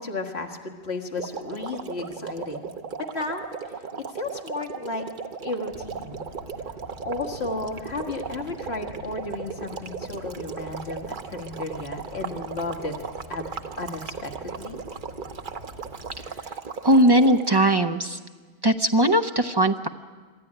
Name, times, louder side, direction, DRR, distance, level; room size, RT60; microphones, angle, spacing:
voice 1, 0.0-2.7 3.1-5.1 5.4-6.2 7.0-12.9 13.3-13.5 13.8-14.8, left 3 dB, 75° left, 3 dB, 1.9 m, -33 dB
sound 1, 1.1-17.6, right 5 dB, 50° right, 1.0 m, -37 dB
sound 2, 5.7-16.3, right 1 dB, 85° right, 3.7 m, -46 dB
voice 2, 16.8-18.2 18.6-19.9, right 1 dB, 30° right, 6 dB, 0.6 m, -19 dB
23.5 x 13.5 x 9.9 m, 1.5 s
omnidirectional pair, 1.1 m